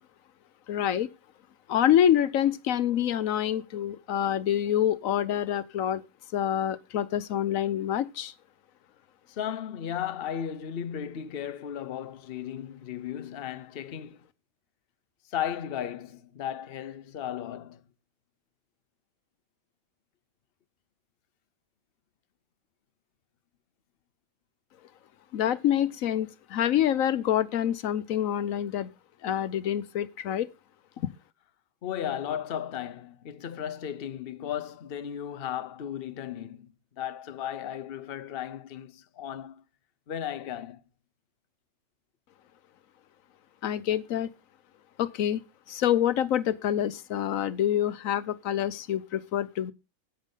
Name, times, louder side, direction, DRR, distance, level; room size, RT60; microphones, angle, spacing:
voice 1, 0.7-1.1 1.7-6.0 6.3-8.3 25.3-28.9 29.2-30.5 31.0-31.1 43.6-44.3 45.0-45.4 45.7-49.7, left 10 dB, 85° left, 1.1 m, -26 dB
voice 2, 9.3-14.2 15.3-17.8 31.8-39.6 40.1-40.8, left 9 dB, 50° left, 0.9 m, -35 dB
10.5 x 9.1 x 3.9 m
omnidirectional pair, 1.4 m